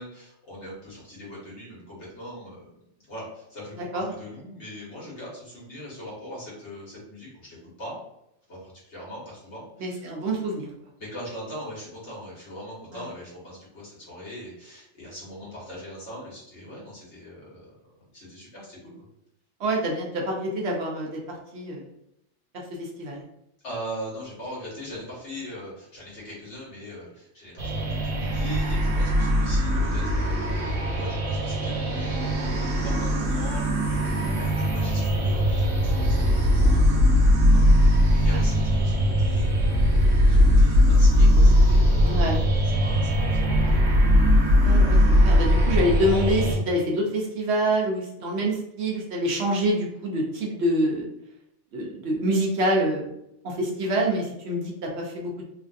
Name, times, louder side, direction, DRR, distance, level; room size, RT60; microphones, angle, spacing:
voice 1, 0.0-2.7 3.0-8.0 8.5-10.0 11.0-17.7 18.1-19.0 23.6-42.3 42.7-44.0, equal, 65° left, -6 dB, 1.6 m, -41 dB
voice 2, 9.8-10.7 12.9-13.0 19.6-21.2 21.5-21.8 22.8-23.2 34.2-34.4 38.3-38.4 42.0-42.4 44.6-51.1 51.7-53.1 53.4-55.4, right 1 dB, 65° right, -1 dB, 0.9 m, -26 dB
sound 1, 27.6-46.6, equal, 85° right, 1.1 m, -20 dB
3.1 x 2.5 x 2.4 m, 0.81 s
omnidirectional pair, 1.3 m